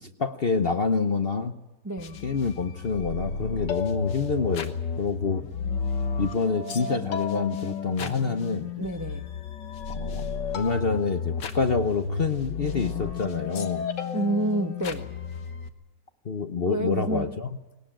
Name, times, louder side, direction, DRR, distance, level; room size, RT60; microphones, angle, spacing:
voice 1, 0.0-1.6 2.2-5.4 6.2-8.7 9.9-10.3 10.5-13.9 16.2-17.6, left 4 dB, 45° left, 7 dB, 0.9 m, -27 dB
voice 2, 1.8-2.2 8.8-9.3 14.1-15.1 16.7-17.3, right 1 dB, 15° right, 6 dB, 0.7 m, -28 dB
sound 1, 2.0-15.7, left 5 dB, 90° left, 2.0 m, -32 dB
19.5 x 18.5 x 8.9 m, 1.0 s
omnidirectional pair, 1.9 m